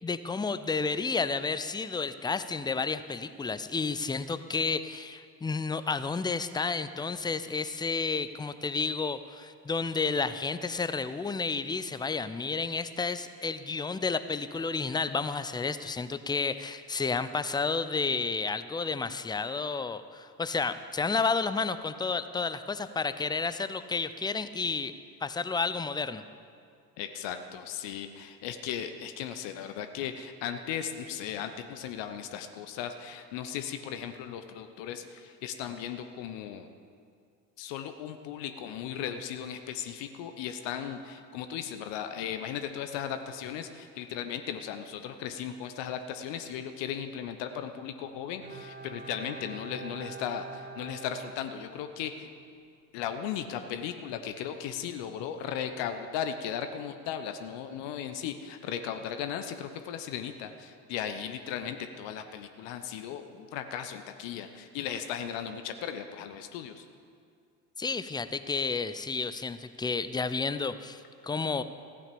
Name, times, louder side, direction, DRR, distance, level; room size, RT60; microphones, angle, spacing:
voice 1, 0.0-24.9 25.2-26.2 67.8-71.6, left 4 dB, 10° left, 12 dB, 0.5 m, -31 dB
voice 2, 27.0-36.7 37.6-52.3 52.9-66.9, left 9 dB, 60° left, 8 dB, 1.0 m, -37 dB
Bowed string instrument, 48.4-52.1 52.4-52.5, right 4 dB, 80° right, 2.4 m, -45 dB
15.0 x 8.8 x 6.9 m, 2.3 s
figure-of-eight pair, 55°, 49 cm